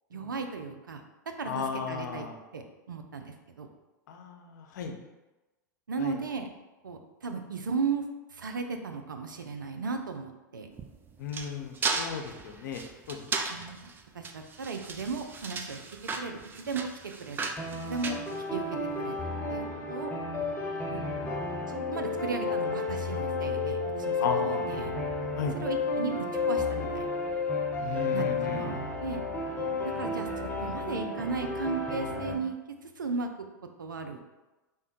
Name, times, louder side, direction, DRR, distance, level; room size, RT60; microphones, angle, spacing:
voice 1, 0.1-1.0 1.4-2.3 2.5-3.7 5.9-6.5 6.8-8.0 8.3-10.7 13.5-13.9 14.1-15.8 16.1-16.9 17.2-17.5 17.8-18.2 18.5-20.1 20.9-21.0 21.7-24.9 25.5-26.2 26.5-27.1 28.1-29.2 29.8-32.6 32.8-33.3 33.8-34.4, right 4 dB, 85° right, 6 dB, 0.4 m, -36 dB
voice 2, 1.4-2.4 4.1-4.9 6.0-6.2 11.2-12.8 13.1-13.2 20.8-21.4 24.2-24.7 25.4-25.6 27.8-28.7 30.0-30.1, left 6 dB, 65° left, 4 dB, 0.6 m, -35 dB
sound 1, 10.7-19.0, right 4 dB, 20° right, 0.3 m, -36 dB
sound 2, 17.6-32.3, left 3 dB, 15° left, 1.0 m, -32 dB
3.5 x 2.2 x 4.1 m, 1.1 s
hypercardioid pair, 95°, 10 cm